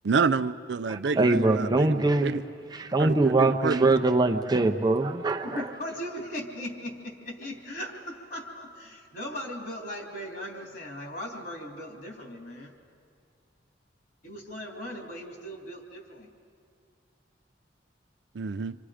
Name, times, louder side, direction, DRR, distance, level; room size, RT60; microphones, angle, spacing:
voice 1, 0.0-2.4 3.0-3.9 18.3-18.8, right 5 dB, 65° right, 0.5 m, -28 dB
voice 2, 0.9-2.4 2.7-5.7, right 2 dB, 20° right, 0.7 m, -23 dB
voice 3, 5.4-12.8 14.2-16.3, equal, 55° left, 3.1 m, -38 dB
26.5 x 26.5 x 5.0 m
head